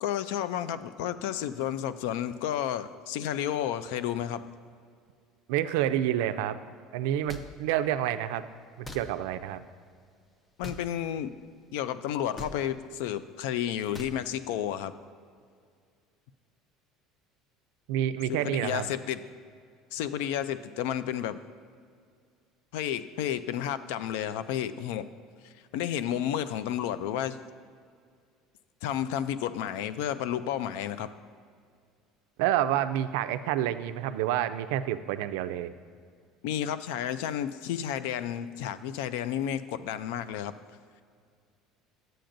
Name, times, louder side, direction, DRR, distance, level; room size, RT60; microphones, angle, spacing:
voice 1, 0.0-4.5 10.6-11.3 11.7-14.9 18.3-19.2 19.9-21.4 22.7-25.1 25.7-27.4 28.8-31.1 36.4-40.5, left 10 dB, 80° left, 14 dB, 0.3 m, -31 dB
voice 2, 5.5-6.6 6.9-8.4 8.8-9.6 17.9-18.9 32.4-35.7, right 11 dB, 90° right, 11 dB, 0.3 m, -28 dB
sound 1, 7.3-7.5 8.8-9.0 10.6-10.8 12.4-12.5 13.9-14.2, left 1 dB, 10° left, 0.4 m, -40 dB
10.0 x 7.6 x 2.6 m, 2.1 s
cardioid pair, 175°, 0 cm